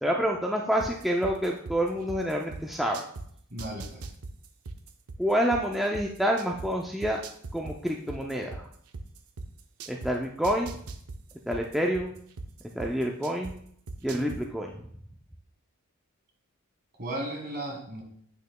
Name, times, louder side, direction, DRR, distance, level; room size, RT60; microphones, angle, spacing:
voice 1, 0.0-3.0 5.2-7.2 7.5-8.7 9.9-10.8 11.5-12.1 12.7-13.5 14.0-14.7, equal, ahead, -1 dB, 0.4 m, -28 dB
sound 1, 0.8-3.2 3.6-6.7 7.0-10.1 10.4-13.5 13.9-14.4, right 3 dB, 75° right, 0.6 m, -39 dB
voice 2, 3.5-4.1 17.0-18.0, right 1 dB, 45° right, 1 dB, 1.7 m, -35 dB
8.5 x 6.5 x 2.2 m, 0.65 s
head